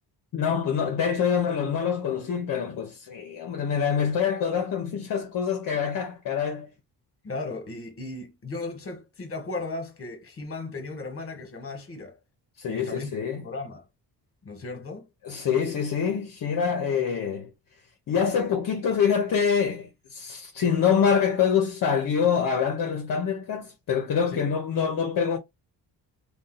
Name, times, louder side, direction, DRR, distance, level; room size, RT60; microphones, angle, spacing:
voice 1, 0.3-6.7 12.6-13.4 15.2-17.5 18.1-25.4, left 7 dB, 55° left, 0.7 m, -25 dB
voice 2, 7.2-12.2 12.7-13.1 13.4-13.8 14.4-15.0 24.3-24.4, left 3 dB, 35° left, 1.2 m, -36 dB
2.6 x 2.2 x 3.8 m
cardioid pair, 125°, 40 cm